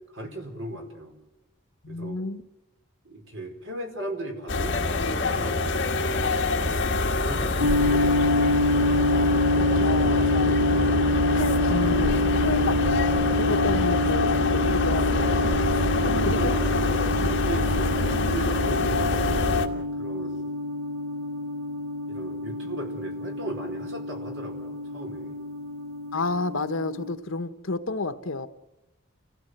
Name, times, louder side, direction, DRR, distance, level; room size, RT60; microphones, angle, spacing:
voice 1, 0.1-1.1 1.9-2.2 3.0-5.8 6.2-6.7 7.2-8.2 12.5-12.8 15.9-16.6 17.4-19.4 19.9-20.5 22.1-25.4, right 1 dB, 65° right, 4.8 m, -37 dB
voice 2, 1.8-2.4 9.1-10.6 11.1-12.8 13.4-15.8 16.0-16.6 17.2-17.4 26.1-28.5, left 3 dB, 75° left, 1.2 m, -31 dB
sound 1, 4.5-19.7, left 2 dB, 55° left, 1.8 m, -25 dB
sound 2, 7.6-27.1, left 2 dB, 85° right, 1.2 m, -27 dB
29.0 x 16.5 x 8.1 m
head